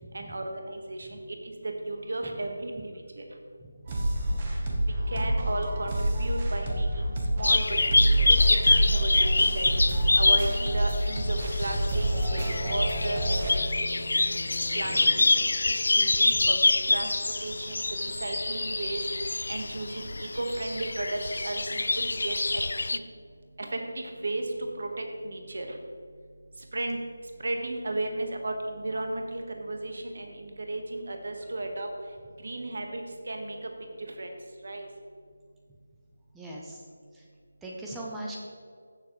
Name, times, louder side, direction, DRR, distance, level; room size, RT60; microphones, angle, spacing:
voice 1, 0.1-3.2 5.1-9.8 10.1-13.6 14.2-14.4 14.7-17.1 17.4-19.1 19.5-22.6 22.9-23.0 23.6-25.8 26.7-27.0 27.4-31.9 32.4-33.0 33.3-33.7 34.0-34.4 34.6-34.9, right 2 dB, 60° right, 3 dB, 1.3 m, -34 dB
sound 1, 3.9-13.5, right 1 dB, 25° right, 1.1 m, -27 dB
sound 2, 7.4-23.0, left 2 dB, 65° left, 0.4 m, -26 dB
sound 3, 11.9-15.7, left 2 dB, 50° left, 1.2 m, -44 dB
voice 2, 14.6-15.3 16.3-16.5 36.3-36.8 37.1-37.2 37.6-38.4, right 1 dB, 5° right, -3 dB, 0.5 m, -41 dB
15.0 x 7.1 x 3.1 m, 2.1 s
figure-of-eight pair, 175°, 0 cm